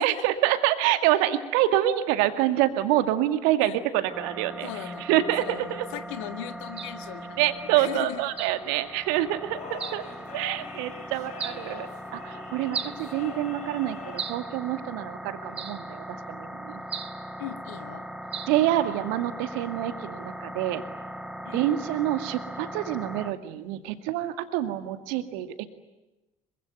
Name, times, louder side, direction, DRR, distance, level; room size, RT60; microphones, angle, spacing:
voice 1, 0.0-4.7 5.0-5.9 7.4-10.0 10.3-11.9 12.1-16.8 18.5-20.8 21.5-25.7, right 13 dB, 65° right, 9 dB, 2.1 m, -26 dB
sound 1, 4.1-23.3, right 1 dB, 5° right, 1.6 m, -40 dB
voice 2, 4.6-5.1 5.4-7.4 7.7-8.3 17.4-18.1 21.4-21.7, left 12 dB, 65° left, 9 dB, 1.9 m, -38 dB
sound 2, 5.1-14.2, left 7 dB, 45° left, 4.0 m, -46 dB
sound 3, 6.8-7.0 8.4-8.6 9.8-10.1 11.4-11.7 12.7-13.0 14.2-14.5 15.6-15.9 16.9-17.2 18.3-18.6, right 6 dB, 35° right, 2.7 m, -35 dB
26.0 x 24.0 x 9.4 m, 1.0 s
figure-of-eight pair, 55°, 17 cm